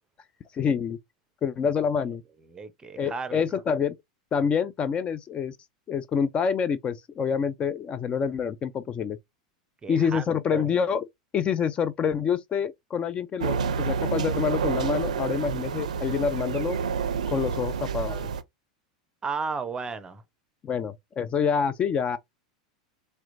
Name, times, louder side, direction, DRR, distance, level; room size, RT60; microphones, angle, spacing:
voice 1, 0.5-1.0 1.4-2.2 3.0-4.0 4.3-5.6 5.9-9.2 9.9-11.1 11.3-16.8 17.3-18.3 20.6-22.2, left 6 dB, 30° left, 0.4 m, -27 dB
voice 2, 2.5-3.4 9.8-10.6 19.2-20.2, right 5 dB, 20° right, 0.6 m, -34 dB
sound 1, 13.4-18.4, right 6 dB, 85° right, 0.4 m, -29 dB
4.2 x 2.1 x 2.5 m
hypercardioid pair, 95°, 4 cm